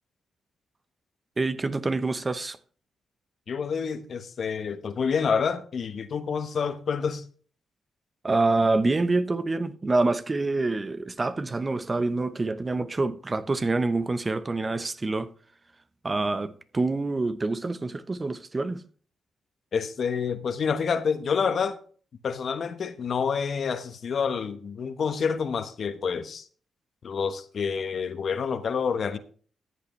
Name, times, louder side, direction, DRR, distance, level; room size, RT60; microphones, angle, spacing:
voice 1, 1.4-2.6 8.2-15.3 16.0-18.8, right 3 dB, 30° right, 1.0 m, -26 dB
voice 2, 3.5-7.2 19.7-21.8 22.2-26.4 27.0-29.2, left 6 dB, 60° left, 1.1 m, -28 dB
14.0 x 8.2 x 3.2 m
supercardioid pair, 55°, 0 cm